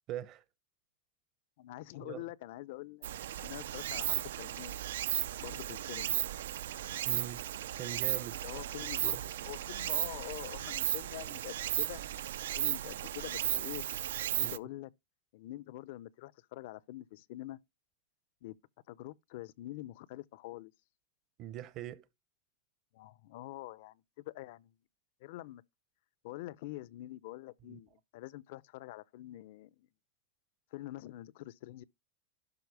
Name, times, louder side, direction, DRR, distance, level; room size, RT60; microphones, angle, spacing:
voice 1, 0.1-0.4 2.0-2.2 7.0-7.4 7.8-8.4 9.0-9.2 14.4-14.5 21.4-22.0 27.7-27.8, right 12 dB, 40° right, 0.8 m, -42 dB
voice 2, 1.6-3.1 3.4-4.8 5.4-6.2 8.4-12.0 12.6-13.8 14.3-14.9 15.3-17.6 18.4-18.6 18.9-20.7 22.9-24.7 25.2-25.6 26.2-29.9 30.7-31.8, left 17 dB, 65° left, 0.5 m, -45 dB
Stream, 3.0-14.6, right 11 dB, 80° right, 0.5 m, -35 dB
12.0 x 4.9 x 4.7 m
supercardioid pair, 130°, 0 cm